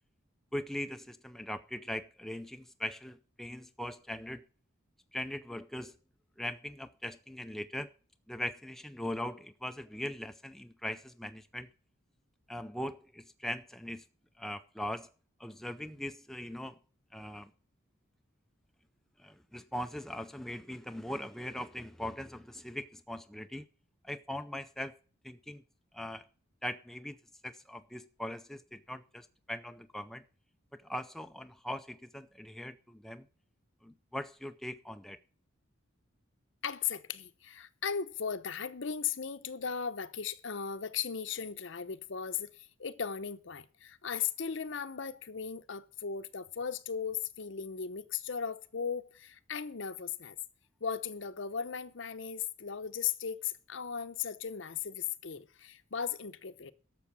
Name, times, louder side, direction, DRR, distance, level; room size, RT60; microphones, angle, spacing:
voice 1, 0.5-4.5 5.1-6.0 6.4-7.9 8.3-11.7 12.5-14.0 14.4-15.1 15.4-16.8 17.1-17.5 19.2-23.7 24.0-24.9 25.2-25.6 25.9-26.2 26.6-27.2 27.4-30.2 30.7-33.3 33.8-35.2, left 1 dB, ahead, 0.4 m, -40 dB
voice 2, 36.6-50.4 50.8-56.7, left 7 dB, 65° left, 0.7 m, -37 dB
12.0 x 7.0 x 7.0 m
head